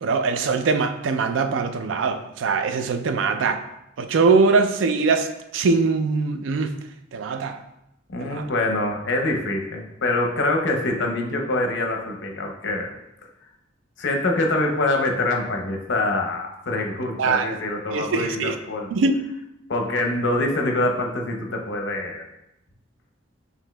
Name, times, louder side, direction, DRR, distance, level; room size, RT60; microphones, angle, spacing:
voice 1, 0.0-3.6 4.0-5.3 5.5-6.7 7.1-7.6 8.2-8.5 17.2-17.5 17.9-18.6 18.9-19.1, right 4 dB, 70° right, 0.3 m, -22 dB
voice 2, 8.1-12.9 14.0-18.9 19.7-22.2, left 2 dB, 65° left, 0.6 m, -25 dB
5.9 x 2.7 x 2.2 m
head